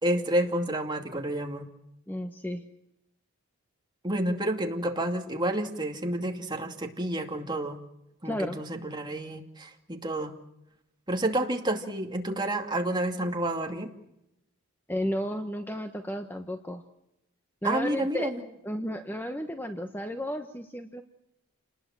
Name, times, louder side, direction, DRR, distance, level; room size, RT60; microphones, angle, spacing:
voice 1, 0.0-1.7 4.0-7.8 8.2-10.3 11.1-13.9 17.6-18.4, right 1 dB, 20° right, 3 dB, 2.5 m, -29 dB
voice 2, 2.1-2.6 8.2-8.6 14.9-16.8 17.6-18.3 18.6-21.0, equal, 10° left, 6 dB, 1.2 m, -33 dB
29.5 x 20.0 x 7.6 m, 0.86 s
head